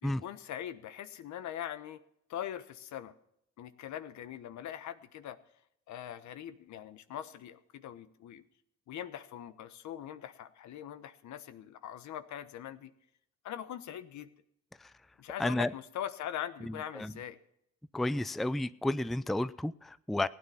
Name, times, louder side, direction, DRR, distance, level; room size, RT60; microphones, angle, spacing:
voice 1, 0.0-2.0 2.3-3.1 3.6-5.4 5.9-8.4 8.9-12.9 13.4-14.3 15.2-17.4, left 10 dB, 70° left, 1.1 m, -42 dB
voice 2, 15.4-15.7 16.7-17.1 17.9-20.3, left 1 dB, ahead, 0.4 m, -32 dB
16.5 x 9.7 x 5.7 m
supercardioid pair, 65°, 30 cm